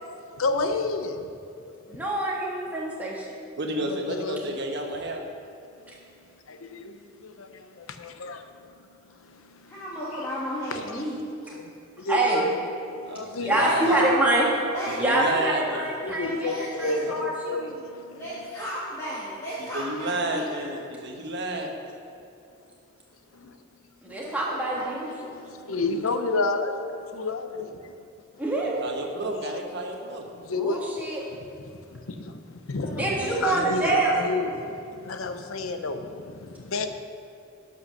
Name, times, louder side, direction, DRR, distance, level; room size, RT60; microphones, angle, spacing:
voice 1, 0.4-1.3 1.7-2.0 3.8-4.6 6.5-6.9 8.0-8.5 9.6-9.7 10.7-11.0 11.6-11.7 12.0-12.6 12.8-13.9 16.0-18.2 23.3-23.6 24.1-24.2 25.3-27.9 29.4-29.6 30.3-30.8 31.4-34.7 35.0-36.9, left 3 dB, 85° left, 8 dB, 0.7 m, -31 dB
voice 2, 1.9-3.3 12.1-12.4 13.4-14.5 15.0-17.6 24.0-25.1 28.4-28.9 30.5-31.2 32.9-34.4, right 2 dB, 10° right, -5 dB, 1.5 m, -25 dB
voice 3, 3.6-5.2 13.0-14.1 15.0-15.9 19.6-21.7 28.8-30.3, right 1 dB, 55° right, 2 dB, 1.2 m, -31 dB
voice 4, 9.7-11.2 13.5-14.1 14.7-15.0 16.4-17.0 18.1-20.6 24.2-25.3 28.3-28.4 32.8-34.1, equal, 15° left, -9 dB, 1.5 m, -34 dB
11.0 x 5.6 x 6.4 m, 2.6 s
head